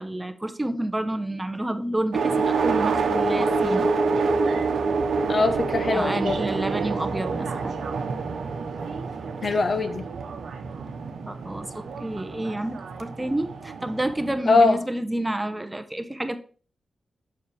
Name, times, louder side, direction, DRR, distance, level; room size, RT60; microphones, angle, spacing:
voice 1, 0.0-3.9 5.9-7.8 11.3-16.4, right 1 dB, 15° right, 8 dB, 0.8 m, -29 dB
sound 1, 2.1-14.4, right 4 dB, 85° right, 0.9 m, -27 dB
voice 2, 5.3-6.4 9.4-10.0 14.5-14.8, left 3 dB, 45° left, 8 dB, 1.0 m, -21 dB
7.3 x 5.8 x 3.4 m, 0.40 s
wide cardioid pair, 90°, 0 cm